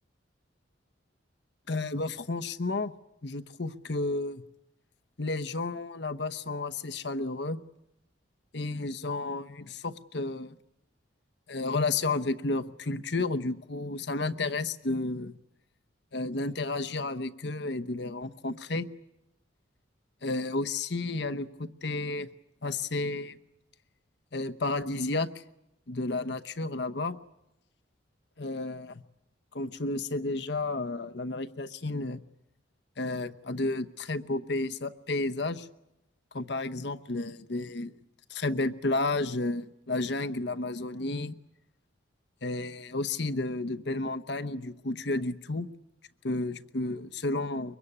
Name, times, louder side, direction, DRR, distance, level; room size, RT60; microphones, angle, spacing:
voice 1, 1.7-2.9 3.2-4.4 5.2-7.6 8.5-10.6 11.5-15.3 16.1-18.9 20.2-22.3 22.6-23.4 24.3-25.4 25.9-27.2 28.4-29.0 29.5-32.2 33.0-35.7 36.3-37.9 38.3-41.4 42.4-45.7 46.2-47.7, left 2 dB, 60° left, 10 dB, 0.9 m, -32 dB
24.0 x 22.5 x 9.9 m, 0.84 s
head